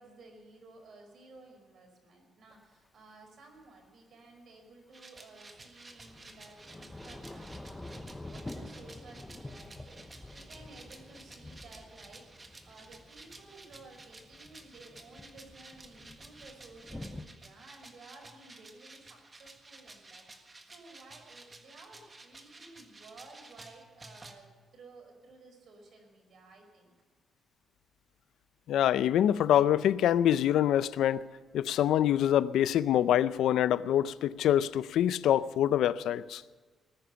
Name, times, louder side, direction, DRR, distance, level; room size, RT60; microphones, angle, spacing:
voice 1, 0.0-24.5 24.7-26.9, right 3 dB, 60° right, 5.1 m, -55 dB
Thunder / Rain, 2.5-2.6 5.5-17.3, left 2 dB, 10° left, 0.8 m, -48 dB
sound 1, 4.9-24.3, right 2 dB, 25° right, 1.6 m, -53 dB
voice 2, 28.7-31.2 31.5-36.4, left 11 dB, 90° left, 0.5 m, -25 dB
19.0 x 10.0 x 6.9 m
cardioid pair, 130°, 0 cm